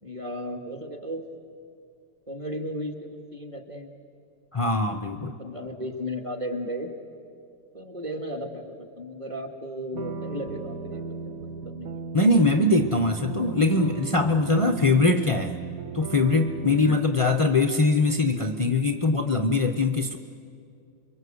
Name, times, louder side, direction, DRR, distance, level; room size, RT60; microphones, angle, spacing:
voice 1, 0.0-1.2 2.3-3.9 5.4-6.9 7.7-12.1 16.7-17.0, equal, 20° right, 3 dB, 2.0 m, -35 dB
voice 2, 4.5-5.4 12.1-15.5 15.9-20.2, left 2 dB, 45° left, 6 dB, 0.4 m, -22 dB
sound 1, 9.9-17.0, right 6 dB, 60° right, 1.3 m, -36 dB
28.0 x 23.0 x 7.9 m, 2.4 s
omnidirectional pair, 1.8 m